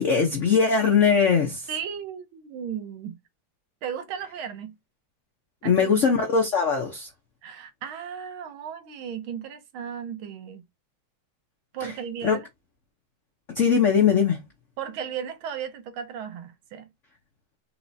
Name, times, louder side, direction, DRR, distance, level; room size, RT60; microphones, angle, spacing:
voice 1, 0.0-1.7 5.6-7.1 12.2-12.4 13.5-14.4, left 6 dB, 70° left, 0.7 m, -20 dB
voice 2, 1.7-3.2 3.8-4.8 5.6-6.0 7.4-10.6 11.7-12.5 14.8-16.9, right 8 dB, 75° right, 1.6 m, -35 dB
4.7 x 3.1 x 2.6 m
omnidirectional pair, 2.3 m